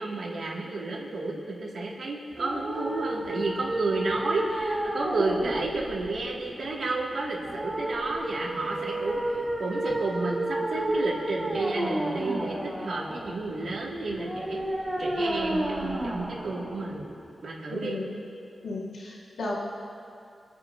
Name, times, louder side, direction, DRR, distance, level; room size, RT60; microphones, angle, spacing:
voice 1, 0.0-9.2 9.6-14.6 15.0-17.1 17.4-18.0, right 3 dB, 65° right, -3 dB, 2.4 m, -31 dB
sound 1, 2.3-17.3, right 1 dB, 10° right, 3.4 m, -32 dB
voice 2, 17.7-18.1 18.6-19.7, left 2 dB, 90° left, -5 dB, 1.9 m, -34 dB
29.0 x 9.7 x 2.8 m, 2.4 s
wide cardioid pair, 155°, 0 cm